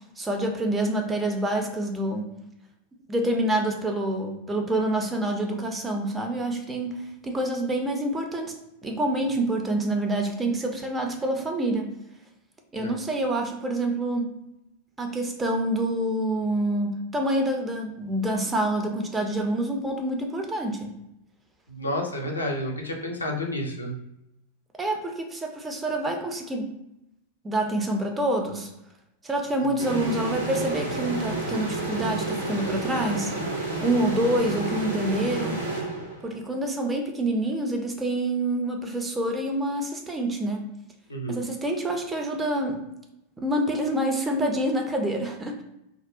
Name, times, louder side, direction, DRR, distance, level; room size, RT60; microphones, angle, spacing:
voice 1, 0.2-2.3 3.1-8.5 8.8-11.9 12.7-14.3 15.0-20.9 24.8-26.7 27.4-28.7 29.2-33.3 33.8-35.6 36.2-40.7 41.3-42.8 43.4-45.6, right 1 dB, 15° right, 3 dB, 0.4 m, -27 dB
voice 2, 21.8-23.9 41.1-41.4, left 1 dB, 80° left, 0 dB, 0.4 m, -30 dB
sound 1, 29.8-36.5, right 2 dB, 75° right, 0.7 m, -30 dB
2.3 x 2.0 x 2.6 m, 0.85 s
figure-of-eight pair, 90°, 0 cm